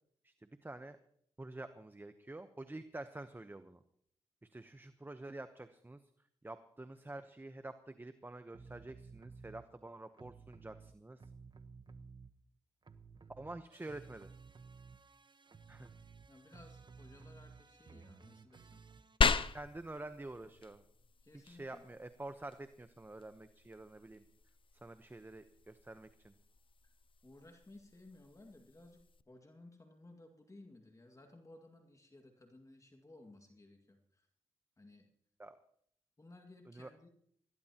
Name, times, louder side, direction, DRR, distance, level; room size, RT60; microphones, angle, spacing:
voice 1, 0.2-1.0 1.4-3.8 4.4-6.0 6.4-11.2 13.4-14.3 15.7-15.9 19.5-20.8 21.4-24.2 24.8-26.3 35.4-35.6 36.7-36.9, right 2 dB, 20° right, 10 dB, 0.9 m, -48 dB
sound 1, 8.5-9.7 10.1-12.6 12.8-19.2, right 5 dB, 45° right, 1.0 m, -56 dB
voice 2, 16.3-18.8 21.2-21.8 26.8-26.9 27.2-34.3 34.8-35.1 36.2-37.1, left 2 dB, 30° left, 4 dB, 2.1 m, -58 dB
sound 2, 19.2-29.2, left 5 dB, 50° left, 0.7 m, -39 dB
21.0 x 17.0 x 3.0 m, 0.66 s
supercardioid pair, 50°, 11 cm